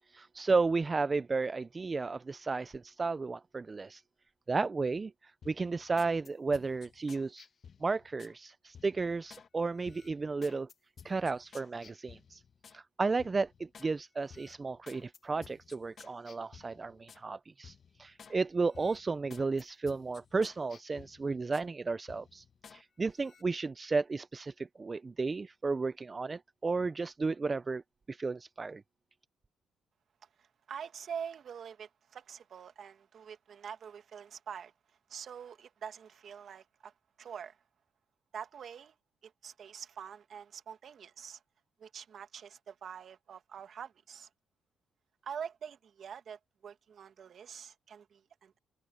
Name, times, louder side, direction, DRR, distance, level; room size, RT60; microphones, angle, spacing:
voice 1, 0.1-4.0 4.5-7.5 7.8-10.7 11.0-12.4 12.7-22.4 22.7-27.8 28.1-28.8, right 4 dB, 30° right, 0.5 m, -33 dB
sound 1, 5.4-8.4 8.7-9.5 9.8-12.8 13.2-13.9 14.3-17.3 17.6-18.4 18.7-21.7 22.1-22.8 23.2-23.4, left 6 dB, 50° left, 1.3 m, -55 dB
voice 2, 30.4-34.7 35.1-36.9 37.2-37.6 38.3-38.9 39.2-41.4 41.8-44.3 45.2-48.6, right 7 dB, 55° right, 2.2 m, -45 dB
cardioid pair, 90°, 0 cm